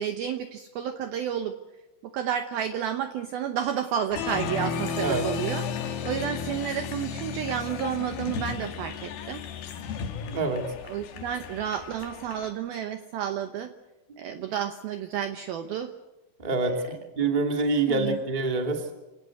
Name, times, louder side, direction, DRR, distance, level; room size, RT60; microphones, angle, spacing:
voice 1, 0.0-1.5 2.0-5.6 6.0-9.4 10.8-13.7 14.2-15.9 17.9-18.2, right 9 dB, 85° right, 8 dB, 2.1 m, -31 dB
Applause, 4.1-12.5, left 6 dB, 60° left, 2.8 m, -34 dB
voice 2, 10.3-10.6 14.2-14.4 16.4-18.8, right 3 dB, 15° right, 3 dB, 1.5 m, -26 dB
27.0 x 18.5 x 8.0 m, 1.0 s
omnidirectional pair, 5.8 m